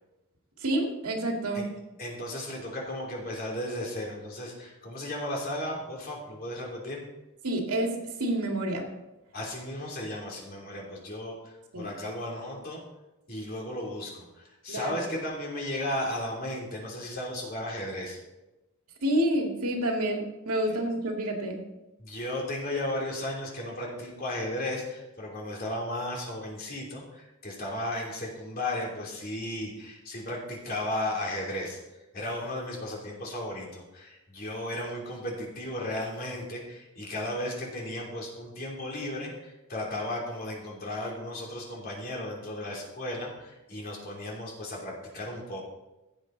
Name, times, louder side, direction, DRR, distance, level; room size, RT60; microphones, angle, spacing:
voice 1, 0.6-1.7 7.4-8.9 11.7-11.9 14.7-15.0 19.0-21.6, right 1 dB, 85° right, 1 dB, 2.3 m, -28 dB
voice 2, 2.0-7.0 9.3-12.8 13.3-18.2 22.0-31.8 32.1-45.6, left 1 dB, 40° left, -2 dB, 3.1 m, -35 dB
16.0 x 7.8 x 3.9 m, 1.0 s
head